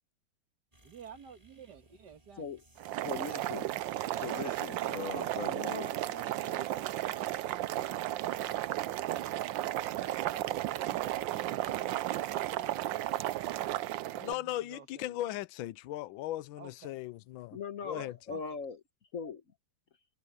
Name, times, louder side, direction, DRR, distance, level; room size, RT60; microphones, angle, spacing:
sound 1, 0.7-13.8, right 1 dB, 15° right, 5.6 m, -62 dB
voice 1, 0.8-2.5 4.0-5.1 5.7-15.4 16.6-17.0 17.9-18.4, right 6 dB, 55° right, 2.2 m, -52 dB
Boiling, 2.8-14.3, right 14 dB, 75° right, 1.3 m, -34 dB
voice 2, 3.0-3.7 4.2-6.0 17.5-18.8 19.1-19.4, left 5 dB, 45° left, 1.4 m, -40 dB
voice 3, 14.2-17.6 17.8-18.2, left 14 dB, 80° left, 1.4 m, -37 dB
omnidirectional pair, 2.2 m